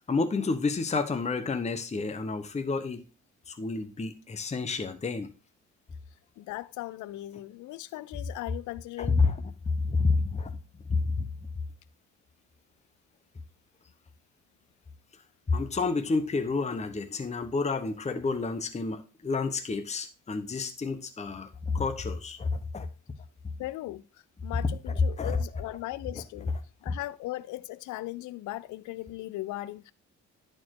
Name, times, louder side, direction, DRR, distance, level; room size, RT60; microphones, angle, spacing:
voice 1, 0.1-3.0 3.5-5.3 9.2-9.3 9.8-10.5 10.9-11.3 15.5-22.9 25.2-25.4 26.9-27.0, left 4 dB, 20° left, 0.9 m, -29 dB
voice 2, 6.4-9.2 23.6-26.5 26.8-29.9, left 16 dB, 80° left, 0.5 m, -38 dB
10.0 x 4.5 x 4.6 m
cardioid pair, 90°, 30 cm